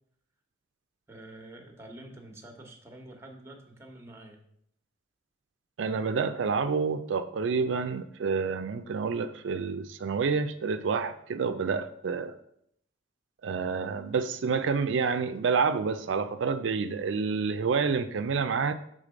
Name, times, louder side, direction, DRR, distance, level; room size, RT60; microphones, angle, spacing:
voice 1, 1.1-4.4, right 1 dB, 15° right, 1.0 m, -47 dB
voice 2, 5.8-12.3 13.4-18.7, right 5 dB, 85° right, 0.4 m, -28 dB
6.6 x 3.8 x 5.0 m
head